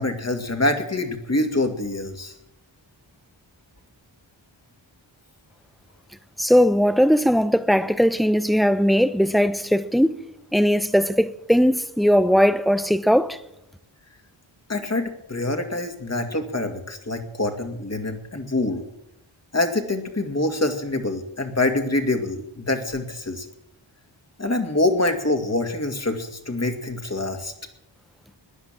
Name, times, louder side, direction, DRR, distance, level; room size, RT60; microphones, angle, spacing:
voice 1, 0.0-2.4 14.7-18.8 19.5-23.5 24.4-27.5, left 2 dB, 30° left, 2.3 m, -25 dB
voice 2, 6.4-10.2 10.5-13.4, equal, ahead, 0.7 m, -19 dB
16.0 x 10.5 x 7.5 m
wide cardioid pair, 60°, 48 cm